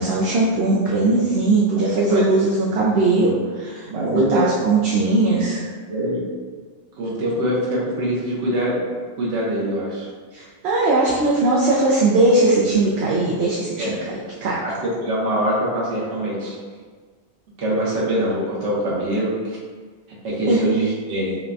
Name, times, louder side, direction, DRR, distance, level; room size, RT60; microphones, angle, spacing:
voice 1, 0.0-5.6 10.3-13.9 14.4-14.6 20.5-20.6, right 2 dB, 70° right, -4 dB, 0.8 m, -19 dB
voice 2, 3.9-4.5 5.4-5.6 5.9-6.2 7.0-8.8 9.2-10.1 13.8-14.0 14.5-16.6 17.6-19.6 20.2-21.4, right 1 dB, 90° right, -6 dB, 1.3 m, -23 dB
5.6 x 2.2 x 2.6 m, 1.5 s
omnidirectional pair, 1.2 m